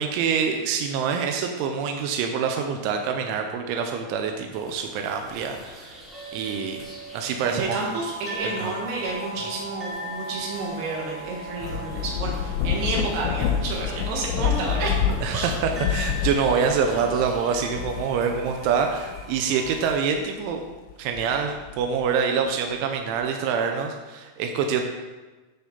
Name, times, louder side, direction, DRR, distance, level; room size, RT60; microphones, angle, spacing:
voice 1, 0.0-6.0 6.3-7.8 8.4-8.7 11.6-11.8 15.2-20.6 21.0-24.8, right 6 dB, 90° right, 4 dB, 3.1 m, -26 dB
sound 1, 4.5-20.0, right 1 dB, ahead, 0.7 m, -39 dB
voice 2, 7.4-15.0 15.3-15.5, right 3 dB, 65° right, -2 dB, 3.5 m, -30 dB
Thunder / Rain, 11.3-20.2 20.7-22.1, left 8 dB, 85° left, 2.6 m, -29 dB
12.5 x 5.9 x 4.1 m, 1.2 s
omnidirectional pair, 5.5 m